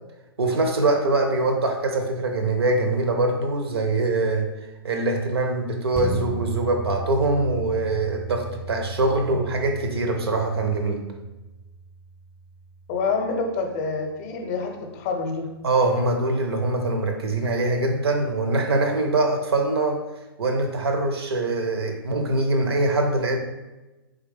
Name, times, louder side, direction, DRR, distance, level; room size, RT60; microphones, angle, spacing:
voice 1, 0.4-4.5 4.8-11.0 15.6-20.0 20.4-23.4, right 2 dB, 70° right, 5 dB, 0.7 m, -23 dB
sound 1, 5.9-14.8 15.2-15.3, right 4 dB, 5° right, 0.4 m, -37 dB
voice 2, 12.9-15.5, left 4 dB, 40° left, 4 dB, 0.6 m, -27 dB
3.6 x 3.1 x 3.5 m, 1.1 s
figure-of-eight pair, 110°, 13 cm